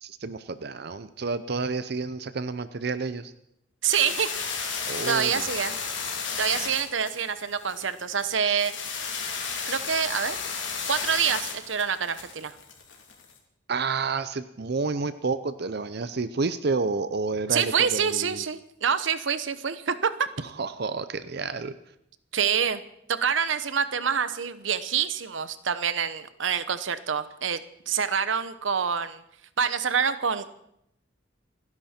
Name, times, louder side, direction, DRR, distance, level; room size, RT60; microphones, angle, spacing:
voice 1, 0.0-3.3 4.9-5.5 8.4-8.6 13.7-18.4 20.4-21.7, right 4 dB, 55° right, 12 dB, 0.6 m, -30 dB
voice 2, 3.8-4.3 5.0-5.8 6.4-8.7 9.7-10.4 10.9-12.6 17.5-20.3 22.3-22.8 23.1-27.6 27.9-29.2 29.6-30.5, right 7 dB, 80° right, 13 dB, 0.9 m, -26 dB
sound 1, 3.9-13.3, left 5 dB, 75° left, 3.1 m, -33 dB
29.0 x 10.5 x 4.4 m, 0.77 s
head